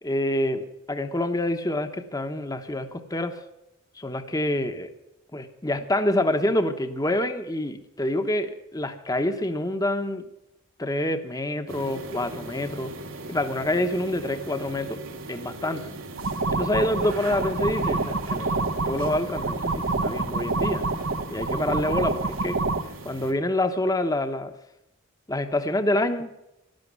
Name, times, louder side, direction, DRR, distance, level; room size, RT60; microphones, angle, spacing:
voice 1, 0.0-3.4 4.0-4.9 5.3-10.3 10.8-12.9 13.3-15.0 15.3-15.9 16.5-20.9 21.3-22.6 23.0-24.5 25.3-26.3, left 1 dB, 20° left, 8 dB, 1.0 m, -27 dB
sound 1, 11.7-23.3, right 2 dB, 90° right, 2.5 m, -39 dB
sound 2, 16.2-22.8, right 3 dB, 70° right, 1.0 m, -27 dB
12.0 x 11.5 x 9.4 m, 0.88 s
head